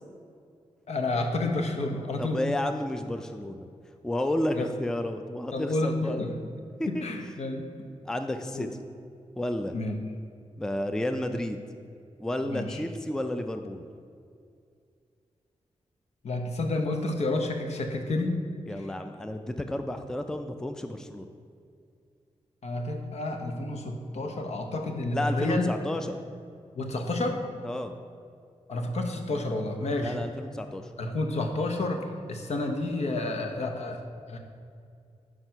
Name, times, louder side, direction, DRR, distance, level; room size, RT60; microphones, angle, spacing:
voice 1, 0.9-2.4 4.6-4.7 5.5-6.5 6.9-7.7 8.5-8.7 9.7-10.0 12.5-12.8 16.2-18.4 22.6-25.7 26.8-27.4 28.7-30.2 31.0-34.0 34.3-34.4, left 2 dB, 70° left, 4 dB, 0.8 m, -30 dB
voice 2, 2.2-3.7 4.0-6.2 6.8-7.0 8.1-8.8 9.4-9.7 10.6-11.6 12.2-13.9 18.7-21.3 25.1-26.2 27.6-27.9 30.0-30.9, left 1 dB, 5° left, 7 dB, 0.3 m, -31 dB
6.1 x 4.8 x 5.5 m, 2.3 s
wide cardioid pair, 105°, 12 cm